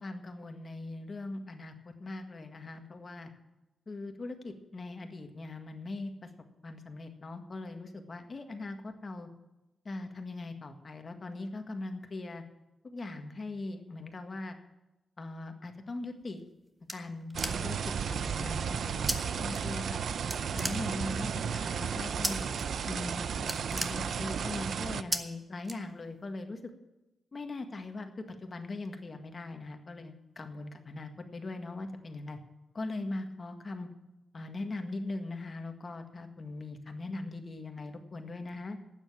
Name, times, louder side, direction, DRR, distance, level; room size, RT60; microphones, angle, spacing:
voice 1, 0.0-3.3 3.9-6.3 6.6-9.3 9.9-12.4 12.8-14.6 15.2-16.4 16.9-20.0 20.5-22.5 22.9-26.6 27.3-28.1 28.4-32.4 32.7-33.9 34.3-38.8, left 2 dB, 35° left, 6 dB, 1.7 m, -40 dB
sound 1, 16.2-17.9 19.1-19.2 19.5-20.0 20.3-21.3 22.2-22.6 23.0-23.1 23.4-24.5 25.1-25.2 25.6-26.3, right 1 dB, 15° right, 1.2 m, -35 dB
sound 2, 17.3-25.0, right 7 dB, 65° right, 0.6 m, -34 dB
12.5 x 9.1 x 8.8 m, 0.98 s
wide cardioid pair, 150°, 0 cm